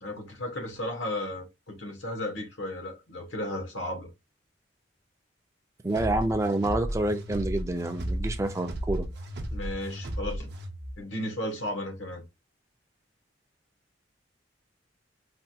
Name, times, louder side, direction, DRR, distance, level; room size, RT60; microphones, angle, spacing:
voice 1, 0.0-4.1 9.5-10.5 11.0-12.2, left 1 dB, 80° left, 1.1 m, -34 dB
voice 2, 5.8-9.1, right 1 dB, 15° right, 0.4 m, -28 dB
sound 1, 5.9-11.0, right 1 dB, 60° right, 0.6 m, -34 dB
3.3 x 2.3 x 2.7 m
head